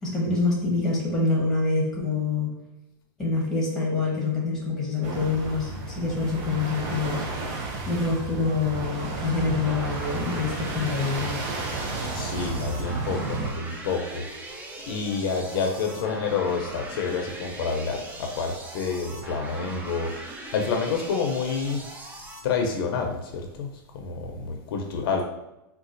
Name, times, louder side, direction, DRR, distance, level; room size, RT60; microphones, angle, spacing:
voice 1, 0.0-2.5 3.2-7.2 7.9-11.4, left 3 dB, 5° left, -3 dB, 1.0 m, -26 dB
sound 1, 5.0-13.5, right 2 dB, 45° right, 0.7 m, -32 dB
sound 2, 9.6-22.4, right 1 dB, 10° right, 0.4 m, -40 dB
voice 2, 12.1-14.3 14.9-20.1 20.5-21.8 22.4-25.2, left 5 dB, 65° left, 3 dB, 0.5 m, -28 dB
3.9 x 2.3 x 2.5 m, 0.94 s
supercardioid pair, 145°, 13 cm